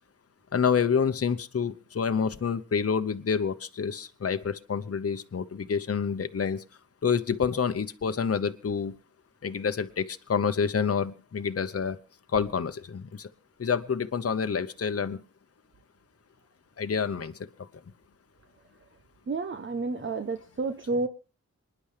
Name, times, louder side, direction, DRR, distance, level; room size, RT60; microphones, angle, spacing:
voice 1, 0.5-6.6 7.0-8.9 9.4-12.0 12.3-13.3 13.6-15.2 16.8-17.7, left 6 dB, 55° left, 9 dB, 0.9 m, -28 dB
voice 2, 19.3-21.1, right 3 dB, 40° right, 9 dB, 0.8 m, -30 dB
26.0 x 10.5 x 3.3 m, 0.34 s
cardioid pair, 60°, 29 cm